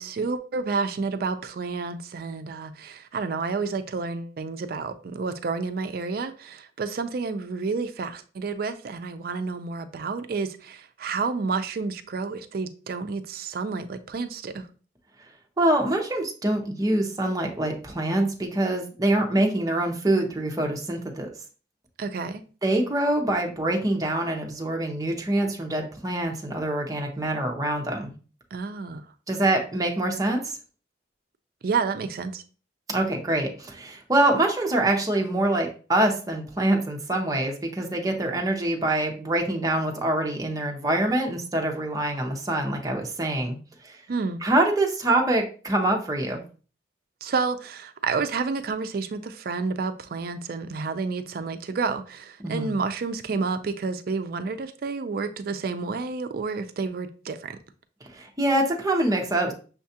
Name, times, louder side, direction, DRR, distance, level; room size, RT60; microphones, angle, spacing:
voice 1, 0.0-14.7 22.0-22.4 28.5-29.0 31.6-32.4 44.1-44.4 47.2-57.6, right 4 dB, 55° right, 0.4 m, -30 dB
voice 2, 15.6-21.3 22.6-28.1 29.3-30.4 32.9-43.6 43.8-44.0 44.4-46.4 52.4-52.8 58.1-59.5, right 1 dB, 20° right, 0.7 m, -25 dB
6.3 x 2.3 x 2.7 m
head